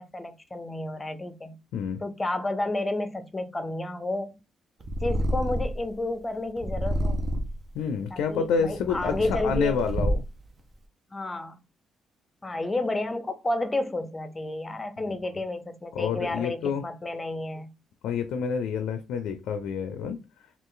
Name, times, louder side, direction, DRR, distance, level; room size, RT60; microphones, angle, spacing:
voice 1, 0.0-1.6 2.0-4.3 5.0-7.2 8.1-9.7 11.1-11.6 12.4-17.7, left 2 dB, 20° left, 0.6 m, -31 dB
Purr, 4.8-5.9 6.6-7.7 8.4-10.5, equal, 40° right, 0.8 m, -28 dB
voice 2, 7.7-10.2 15.0-15.2 15.9-16.8 18.0-20.2, left 6 dB, 85° left, 0.4 m, -28 dB
3.2 x 2.4 x 3.8 m
cardioid pair, 90°, 0 cm